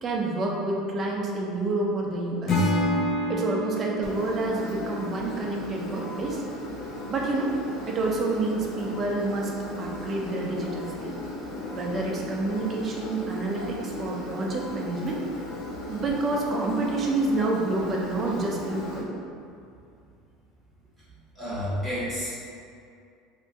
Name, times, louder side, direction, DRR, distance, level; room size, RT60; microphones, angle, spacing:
voice 1, 0.0-2.7 3.3-6.4 7.1-7.5 7.9-11.2 11.7-15.2 15.9-19.1, right 2 dB, 25° right, -1 dB, 0.5 m, -28 dB
Acoustic guitar / Strum, 2.5-5.6, left 1 dB, 40° left, 0.5 m, -28 dB
Engine, 4.0-19.0, left 1 dB, 90° left, 1.3 m, -37 dB
voice 2, 21.3-22.4, equal, 10° left, -12 dB, 1.4 m, -31 dB
2.9 x 2.7 x 3.5 m, 2.4 s
cardioid pair, 150°, 0 cm